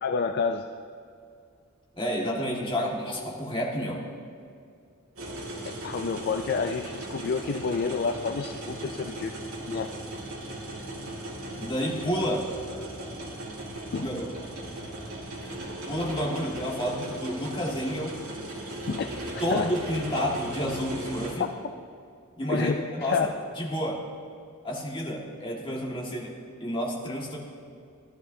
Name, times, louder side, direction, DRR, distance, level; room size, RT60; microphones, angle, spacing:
voice 1, 0.0-0.7 5.6-9.3 9.7-9.9 13.9-14.1 18.9-19.1 19.3-19.7 21.4-21.5 22.5-23.3, left 5 dB, 50° left, 5 dB, 0.4 m, -29 dB
voice 2, 1.9-4.0 11.6-12.5 13.9-14.3 15.9-18.2 19.4-21.5 22.4-24.0 24.6-26.3 26.6-27.4, equal, 25° left, -3 dB, 1.7 m, -30 dB
sound 1, 5.2-21.3, right 1 dB, 80° right, 2.0 m, -37 dB
15.5 x 11.5 x 2.7 m, 2.3 s
head